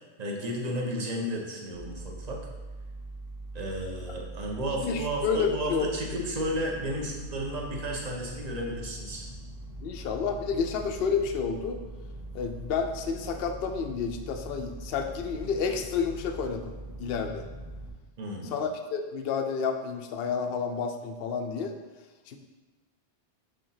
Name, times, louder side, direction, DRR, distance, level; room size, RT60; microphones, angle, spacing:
voice 1, 0.2-2.4 3.5-9.3 18.2-18.5, equal, 35° right, -1 dB, 1.1 m, -33 dB
sound 1, 1.7-17.9, right 1 dB, 15° right, 1.1 m, -42 dB
voice 2, 4.8-5.9 9.8-11.8 12.3-16.7 17.0-17.5 18.5-21.8 22.3-22.4, left 5 dB, 60° left, 5 dB, 0.8 m, -30 dB
5.3 x 4.0 x 5.7 m, 1.2 s
omnidirectional pair, 1.2 m